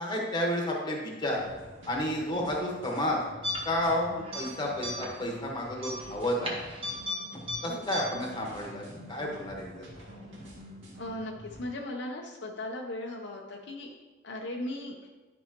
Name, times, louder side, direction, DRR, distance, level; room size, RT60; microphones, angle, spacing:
voice 1, 0.0-1.4 1.9-3.2 3.6-4.1 4.3-6.5 7.6-9.7, left 1 dB, 20° left, 0 dB, 1.3 m, -31 dB
sound 1, 1.3-11.6, equal, 75° right, 2.1 m, -47 dB
sound 2, 3.4-3.9 4.2-4.5 4.8-5.2 5.8-7.2 7.5-7.6 7.9-8.0, left 1 dB, 30° right, 1.2 m, -34 dB
voice 2, 7.6-8.0 11.0-13.9 14.2-15.1, left 1 dB, 60° left, 1 dB, 0.7 m, -38 dB
11.0 x 5.5 x 2.9 m, 1.2 s
head